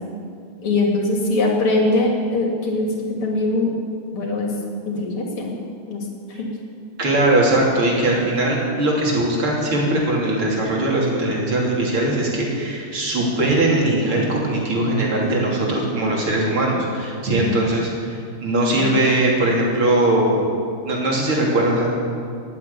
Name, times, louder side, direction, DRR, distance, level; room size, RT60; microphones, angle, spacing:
voice 1, 0.6-3.7 4.1-4.5 4.8-5.6 5.9-6.5 17.2-17.6 18.7-18.9, left 2 dB, 80° left, 0 dB, 3.3 m, -22 dB
voice 2, 7.0-20.4 20.9-21.9, right 1 dB, 75° right, -3 dB, 4.0 m, -20 dB
19.5 x 8.3 x 8.4 m, 2.3 s
omnidirectional pair, 2.4 m